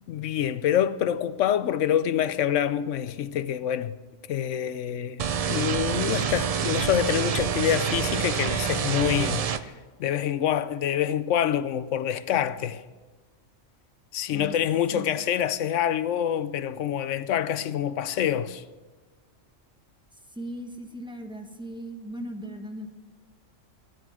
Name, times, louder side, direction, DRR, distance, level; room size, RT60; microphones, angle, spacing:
voice 1, 0.1-3.9 4.3-9.7 10.0-12.8 14.1-18.6, left 10 dB, 75° left, 0.9 m, -26 dB
sound 1, 5.2-9.6, right 7 dB, 80° right, 0.3 m, -27 dB
voice 2, 20.3-22.9, equal, 5° right, 1.0 m, -38 dB
14.0 x 9.8 x 6.1 m
omnidirectional pair, 1.3 m